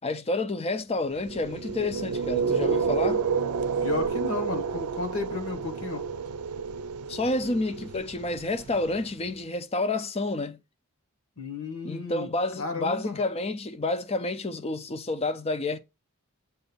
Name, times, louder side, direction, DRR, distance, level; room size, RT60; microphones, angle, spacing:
voice 1, 0.0-3.2 7.1-10.6 11.8-15.8, left 2 dB, 25° left, 0.6 m, -29 dB
sound 1, 1.2-9.3, right 5 dB, 90° right, 0.5 m, -30 dB
voice 2, 3.8-6.1 11.4-12.3 12.6-13.2, left 3 dB, 70° left, 1.6 m, -33 dB
7.8 x 2.7 x 5.3 m
head